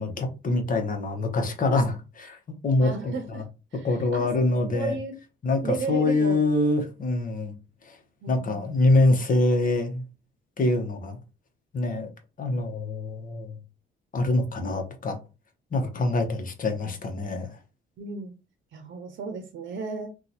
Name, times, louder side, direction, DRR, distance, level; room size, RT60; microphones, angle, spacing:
voice 1, 0.0-2.4 2.6-3.4 3.8-4.9 5.4-7.5 7.9-8.0 8.3-10.0 10.6-11.2 11.7-12.1 12.4-13.5 14.1-15.2 15.7-17.6, left 2 dB, 45° left, 0.9 m, -25 dB
voice 2, 2.8-3.4 3.7-4.4 4.7-5.2 5.6-6.4 8.2-8.7 18.0-18.3 18.7-20.1, right 4 dB, 70° right, 0.7 m, -34 dB
2.8 x 2.3 x 4.0 m
cardioid pair, 90°, 20 cm